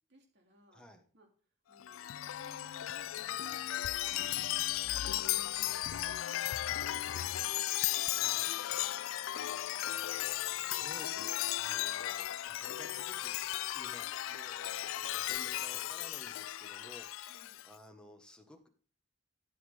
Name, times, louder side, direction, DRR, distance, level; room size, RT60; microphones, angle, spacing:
voice 1, 0.1-0.8 1.1-1.3 1.7-4.3 4.8-8.8 9.3-10.3 17.3-17.7, equal, 55° right, 2 dB, 2.7 m, -63 dB
voice 2, 0.7-1.0 4.1-4.6 8.1-8.9 10.7-13.4 13.7-18.7, equal, 5° left, 3 dB, 1.5 m, -55 dB
Chime, 1.8-17.7, left 14 dB, 70° left, 0.3 m, -35 dB
13.5 x 7.3 x 3.6 m, 0.41 s
head